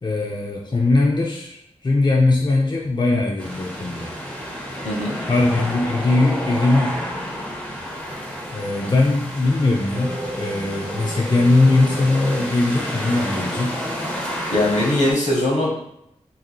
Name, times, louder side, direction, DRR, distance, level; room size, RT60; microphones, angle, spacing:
voice 1, 0.0-1.6 1.8-4.1 5.3-6.9 8.5-13.8, left 2 dB, 40° left, -1 dB, 0.5 m, -20 dB
sound 1, 3.4-15.1, equal, 10° left, 1.2 m, -30 dB
voice 2, 4.8-5.2 8.8-8.9 14.5-15.8, left 1 dB, 80° left, -2 dB, 1.1 m, -21 dB
sound 2, 9.9-13.0, equal, 45° right, 0.9 m, -32 dB
3.8 x 2.8 x 2.2 m, 0.77 s
cardioid pair, 40°, 12 cm